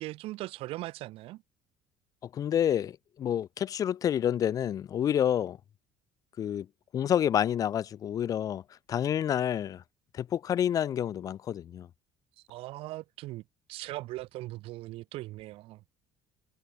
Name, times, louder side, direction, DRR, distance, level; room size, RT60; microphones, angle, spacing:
voice 1, 0.0-1.4 12.5-13.4 13.7-15.8, right 18 dB, 65° right, 1.0 m, -39 dB
voice 2, 2.2-5.6 6.4-6.7 6.9-8.6 8.9-9.8 10.1-11.9, left 10 dB, 35° left, 0.6 m, -28 dB
cardioid pair, 155°, 10 cm